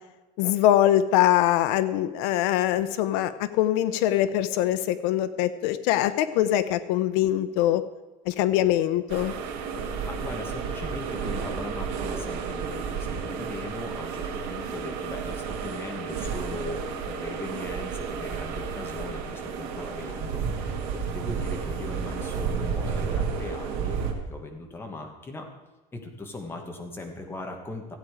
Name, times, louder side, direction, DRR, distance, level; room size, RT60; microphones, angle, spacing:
voice 1, 0.4-7.8 8.3-9.3, left 13 dB, 85° left, 13 dB, 0.7 m, -23 dB
sound 1, 9.1-24.1, right 6 dB, 70° right, 2.2 m, -32 dB
voice 2, 9.8-24.0 24.3-25.5 25.9-28.0, left 2 dB, 10° left, 2 dB, 1.4 m, -39 dB
15.5 x 8.7 x 4.9 m, 1.1 s
cardioid pair, 175°, 19 cm